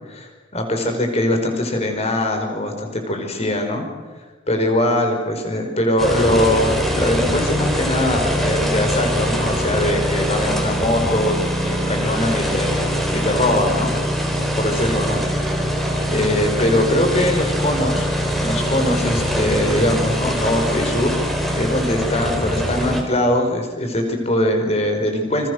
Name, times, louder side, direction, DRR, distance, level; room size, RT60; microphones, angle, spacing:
voice 1, 0.0-3.8 4.5-11.4 11.6-12.9 13.1-13.9 14.2-14.3 14.5-15.2 15.6-15.7 16.1-18.1 18.4-21.1 21.5-25.5, left 1 dB, 30° left, 4 dB, 5.1 m, -21 dB
sound 1, 6.0-23.0, equal, ahead, 4.3 m, -22 dB
29.0 x 27.0 x 6.6 m, 1.3 s
head